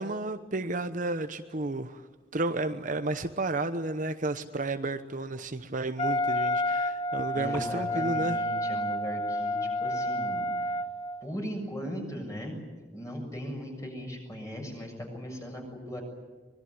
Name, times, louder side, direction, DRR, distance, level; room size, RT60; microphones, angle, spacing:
voice 1, 0.0-2.0 2.3-8.4, right 2 dB, 45° right, 9 dB, 1.0 m, -32 dB
Wind instrument woodwind instrument, 6.0-11.2, left 1 dB, 35° left, 1.1 m, -30 dB
voice 2, 7.3-10.8 11.2-12.6 12.9-16.0, equal, 20° left, 1 dB, 7.1 m, -38 dB
25.0 x 21.0 x 9.6 m, 1.3 s
head